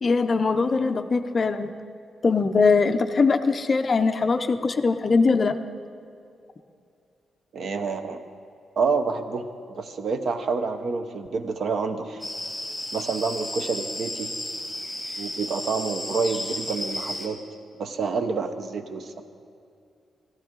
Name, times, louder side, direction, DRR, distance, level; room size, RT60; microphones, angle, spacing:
voice 1, 0.0-1.7 2.2-5.6, left 4 dB, 30° left, 8 dB, 0.5 m, -21 dB
voice 2, 7.5-8.2 8.8-12.2 12.9-14.3 15.2-17.4 17.8-19.2, right 4 dB, 50° right, 8 dB, 0.8 m, -28 dB
sound 1, 12.2-17.3, left 1 dB, ahead, 1.5 m, -33 dB
15.0 x 14.0 x 3.8 m, 2.5 s
wide cardioid pair, 155°, 0 cm